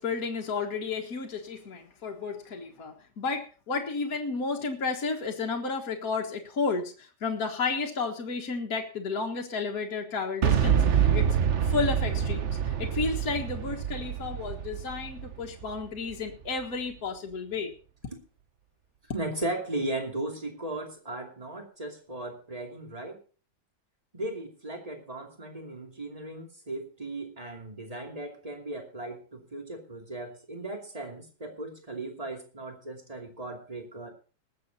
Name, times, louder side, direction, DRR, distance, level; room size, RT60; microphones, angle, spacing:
voice 1, 0.0-11.4 11.6-17.7, left 4 dB, 50° left, 2 dB, 2.0 m, -32 dB
Boom, 10.4-16.3, right 8 dB, 45° right, 1.1 m, -26 dB
voice 2, 19.1-23.2 24.1-34.1, right 2 dB, 20° right, 3 dB, 2.7 m, -37 dB
20.0 x 7.8 x 4.1 m, 0.38 s
omnidirectional pair, 2.1 m